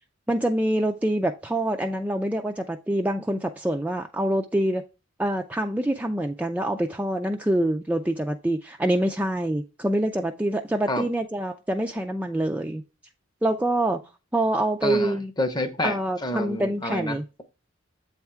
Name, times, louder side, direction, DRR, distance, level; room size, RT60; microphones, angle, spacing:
voice 1, 0.3-4.8 5.2-12.8 13.4-14.0 14.3-15.3 15.8-17.2, right 1 dB, 10° right, 0.3 m, -25 dB
voice 2, 14.8-17.4, left 1 dB, 20° left, 0.7 m, -29 dB
7.9 x 3.5 x 4.4 m
head